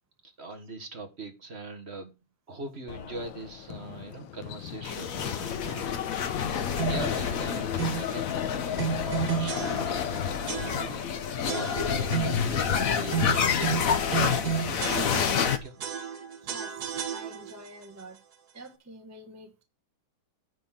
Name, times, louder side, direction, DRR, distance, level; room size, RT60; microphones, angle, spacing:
voice 1, 0.2-2.1 2.5-6.0 6.9-11.0 11.4-15.7, right 2 dB, 35° right, 1.5 m, -41 dB
sound 1, 2.9-12.4, left 11 dB, 70° left, 1.4 m, -36 dB
sound 2, 4.8-15.6, left 7 dB, 55° left, 1.0 m, -29 dB
sound 3, 6.8-7.2 7.8-8.1 8.8-10.1 10.5-11.1 11.5-12.5 13.1-15.5 15.8-17.7, right 9 dB, 55° right, 1.6 m, -32 dB
voice 2, 16.4-18.2 18.5-19.6, right 2 dB, 15° right, 0.7 m, -47 dB
9.8 x 4.3 x 7.4 m
omnidirectional pair, 2.3 m